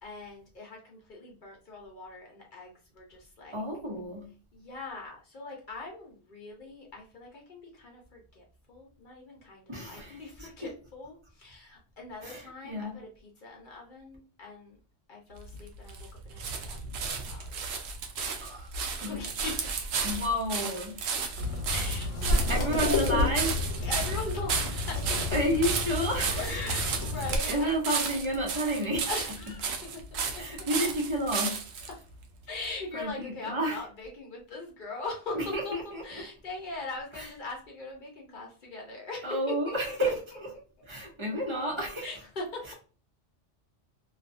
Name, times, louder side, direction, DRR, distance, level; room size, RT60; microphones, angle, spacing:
voice 1, 0.0-3.6 4.5-14.8 15.1-17.8 19.0-19.8 21.7-22.9 23.8-25.2 26.4-27.8 29.1-30.4 32.5-39.7 40.1-40.2 40.8-40.9 42.0-42.7, left 3 dB, 45° left, 0.8 m, -41 dB
voice 2, 3.5-4.3 9.7-10.5 12.2-13.0 18.4-18.7 19.0-19.2 20.0-21.0 22.5-23.6 25.3-26.4 27.5-29.1 30.4-31.9 32.9-33.8 35.3-36.3 37.1-37.3 39.2-40.5 40.9-42.1, equal, 30° right, 0.7 m, -31 dB
sound 1, 15.4-31.9 32.6-32.7, right 5 dB, 70° right, 0.8 m, -34 dB
sound 2, 21.3-27.4, left 3 dB, 85° left, 1.1 m, -30 dB
2.6 x 2.4 x 2.4 m
omnidirectional pair, 1.3 m